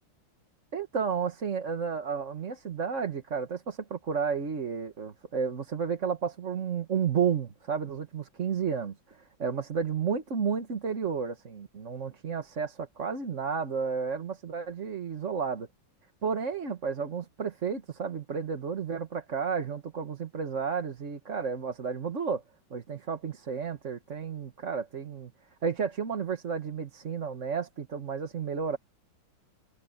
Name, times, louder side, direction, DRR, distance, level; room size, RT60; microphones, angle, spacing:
voice 1, 0.7-15.7 16.2-22.4 22.7-25.3 25.6-28.8, right 6 dB, 40° right, 1.6 m, -32 dB
omnidirectional pair, 2.1 m